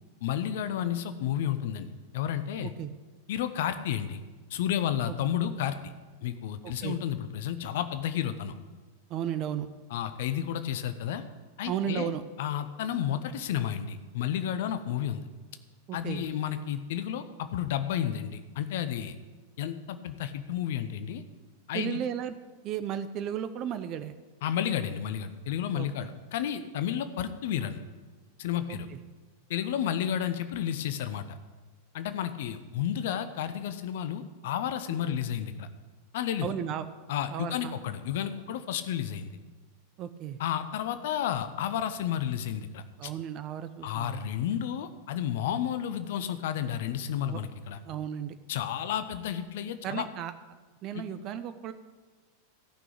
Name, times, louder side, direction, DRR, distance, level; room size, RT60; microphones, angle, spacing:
voice 1, 0.2-1.9 2.1-2.7 3.3-4.2 4.5-5.7 6.2-8.5 9.9-11.2 11.6-12.1 12.4-15.3 15.9-19.1 19.6-21.2 21.7-22.0 24.4-27.8 28.4-28.9 29.5-31.4 31.9-35.7 36.1-36.5 37.1-39.3 40.4-43.1 43.8-47.8 48.5-50.1 50.9-51.0, left 10 dB, 55° left, 10 dB, 0.7 m, -31 dB
voice 2, 6.6-7.0 9.1-9.7 11.7-12.2 15.9-16.3 21.7-22.3 22.6-24.1 25.7-25.9 28.7-29.0 35.1-35.2 36.4-36.8 37.3-37.8 40.0-40.4 43.0-44.3 47.3-47.4 47.8-48.4 49.8-50.3 50.8-51.7, right 9 dB, 35° right, 11 dB, 0.7 m, -34 dB
14.0 x 6.1 x 8.7 m, 1.3 s
figure-of-eight pair, 90°, 0 cm